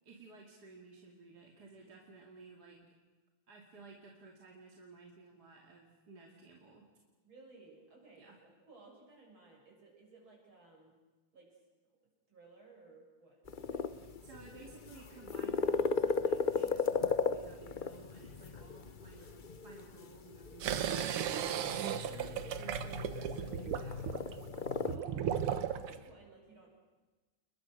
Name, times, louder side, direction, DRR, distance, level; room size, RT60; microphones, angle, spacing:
voice 1, 0.0-2.9 3.5-6.9 8.2-8.4 13.7-24.2, right 3 dB, 45° right, 0 dB, 2.9 m, -55 dB
voice 2, 7.2-10.9 11.3-11.6 12.3-13.4 24.9-25.4 25.7-26.7, right 3 dB, 65° right, -1 dB, 8.1 m, -58 dB
sound 1, 13.5-25.0, left 5 dB, 60° left, 0.5 m, -37 dB
sound 2, 20.6-26.0, right 9 dB, 85° right, 2.0 m, -36 dB
29.5 x 21.5 x 6.4 m, 1.2 s
omnidirectional pair, 2.4 m